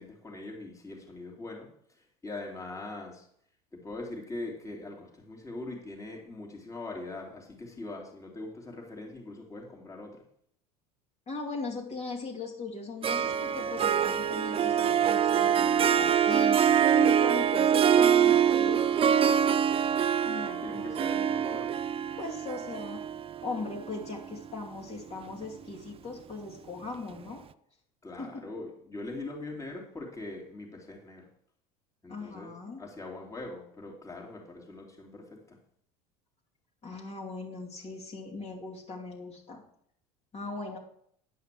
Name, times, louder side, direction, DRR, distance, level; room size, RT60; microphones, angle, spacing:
voice 1, 0.0-1.7 2.0-3.3 3.7-10.2 20.6-21.7 28.0-31.2 32.0-32.5 32.8-35.6, left 2 dB, 15° left, -1 dB, 3.0 m, -41 dB
voice 2, 11.3-16.6 16.9-19.4 20.2-20.9 22.2-23.0 23.4-27.4 28.2-28.3 32.1-32.8 36.8-39.6 40.3-40.8, left 3 dB, 35° left, -3 dB, 2.8 m, -39 dB
Harp, 13.0-24.5, right 8 dB, 30° right, 0.5 m, -25 dB
10.0 x 5.6 x 7.6 m, 0.67 s
supercardioid pair, 95°, 19 cm